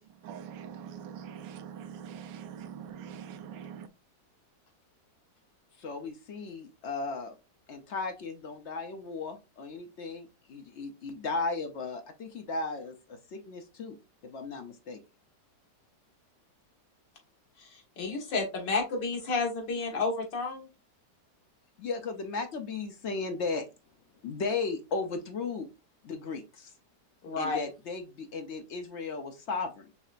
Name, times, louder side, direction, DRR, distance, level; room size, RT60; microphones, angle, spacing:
voice 1, 0.2-3.9, right 8 dB, 80° right, 1.2 m, -43 dB
voice 2, 5.8-7.4 7.7-14.0 14.2-15.0 21.8-23.7 24.2-25.7 26.0-26.7 27.4-29.9, left 4 dB, 65° left, 0.7 m, -36 dB
voice 3, 18.0-20.6 27.2-27.6, left 3 dB, 90° left, 2.1 m, -30 dB
5.7 x 3.2 x 2.4 m
omnidirectional pair, 1.9 m